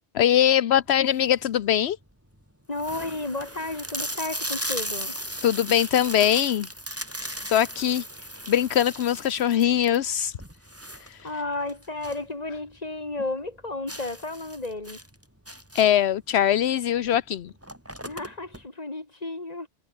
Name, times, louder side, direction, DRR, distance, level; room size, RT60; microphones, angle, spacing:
voice 1, 0.1-2.0 5.4-6.7 7.5-8.0 8.5-10.4 11.1-11.2 15.7-17.5, left 10 dB, 80° left, 1.0 m, -22 dB
sound 1, 0.9-1.4 2.0-2.1 2.3-2.4 2.7-12.3 12.6-12.7 13.1-13.2 13.9-16.1 17.1-17.2 17.5-18.6, equal, 10° right, 7.6 m, -36 dB
voice 2, 2.7-5.1 11.2-15.0 18.1-19.7, left 2 dB, 40° left, 2.9 m, -33 dB
omnidirectional pair, 1.1 m